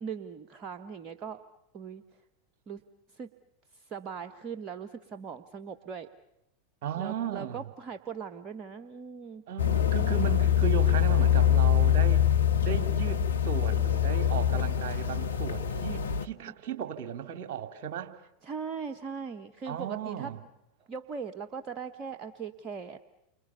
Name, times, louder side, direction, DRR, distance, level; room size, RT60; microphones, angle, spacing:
voice 1, 0.0-1.4 1.7-2.0 2.7-2.8 3.1-3.3 3.7-6.1 7.0-9.4 18.4-20.3 20.9-23.0, right 6 dB, 35° right, 1.3 m, -39 dB
voice 2, 6.8-7.6 9.5-12.3 12.6-18.1 19.7-20.4, right 8 dB, 50° right, 2.7 m, -35 dB
sound 1, 9.6-16.3, left 9 dB, 80° left, 1.1 m, -24 dB
29.5 x 26.0 x 7.0 m
figure-of-eight pair, 85°, 0 cm